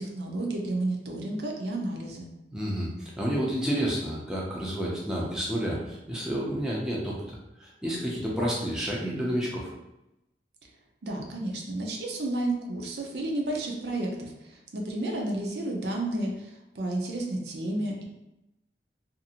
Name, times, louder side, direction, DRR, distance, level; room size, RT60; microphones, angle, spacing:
voice 1, 0.0-2.3 11.0-18.0, right 1 dB, 70° right, 0 dB, 0.5 m, -31 dB
voice 2, 2.5-7.2 7.6-9.7, equal, 5° right, -5 dB, 0.5 m, -30 dB
2.6 x 2.5 x 2.8 m, 0.91 s
head